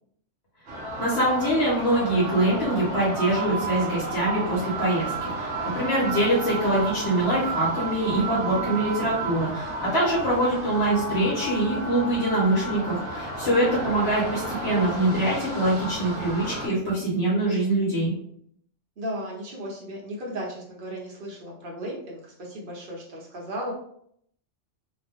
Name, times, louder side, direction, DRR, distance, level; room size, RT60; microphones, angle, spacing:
sound 1, 0.7-16.7, right 2 dB, 70° right, 1.1 m, -32 dB
voice 1, 1.0-18.1, right 1 dB, 60° left, -6 dB, 1.1 m, -24 dB
voice 2, 13.4-13.8 19.0-23.7, equal, 50° right, -2 dB, 0.9 m, -35 dB
2.8 x 2.2 x 3.5 m, 0.67 s
omnidirectional pair, 1.3 m